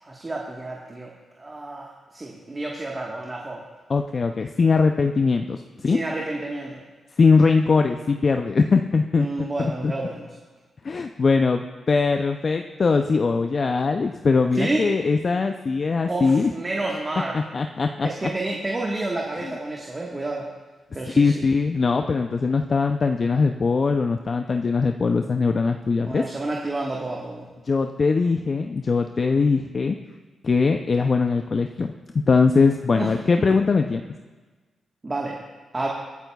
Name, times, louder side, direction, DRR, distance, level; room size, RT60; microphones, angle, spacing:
voice 1, 0.0-3.6 5.9-6.8 9.2-10.3 14.5-14.9 16.1-17.4 18.0-20.5 20.9-21.4 26.0-27.5 32.9-33.1 33.4-33.5 35.0-35.4 35.7-35.9, right 2 dB, 30° right, -2 dB, 1.4 m, -30 dB
voice 2, 3.9-6.0 7.2-9.3 9.6-9.9 10.8-16.5 17.3-18.1 21.1-26.2 27.7-30.0 30.4-34.0, left 4 dB, 50° left, 5 dB, 0.5 m, -21 dB
23.0 x 8.7 x 2.3 m, 1.3 s
cardioid pair, 65°, 0 cm